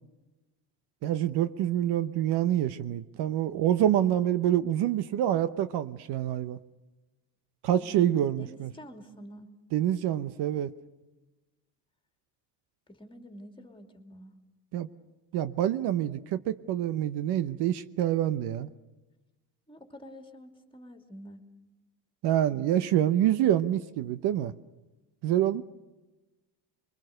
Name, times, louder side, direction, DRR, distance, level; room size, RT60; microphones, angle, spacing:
voice 1, 1.0-6.6 7.6-8.7 9.7-10.7 14.7-14.9 15.3-18.7 22.2-24.5 25.2-25.6, right 11 dB, 55° right, 12 dB, 0.9 m, -26 dB
voice 2, 7.7-9.5 12.9-14.3 19.7-21.4, equal, 10° left, 5 dB, 2.6 m, -48 dB
25.5 x 22.5 x 6.6 m, 1.1 s
supercardioid pair, 110°, 46 cm